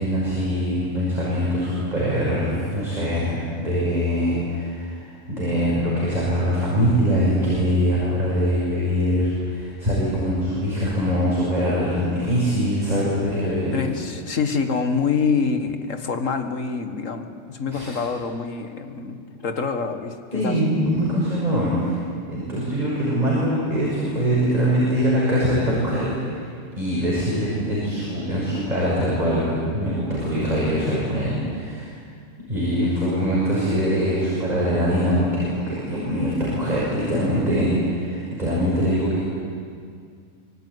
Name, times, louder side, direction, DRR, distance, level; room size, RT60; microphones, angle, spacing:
voice 1, 0.0-13.8 17.7-17.9 20.3-22.0 22.3-26.5 26.8-31.9 32.5-39.2, equal, 30° right, -6 dB, 6.3 m, -23 dB
voice 2, 13.7-20.6, left 5 dB, 80° left, 7 dB, 2.0 m, -26 dB
25.5 x 22.5 x 9.7 m, 2.2 s
omnidirectional pair, 1.3 m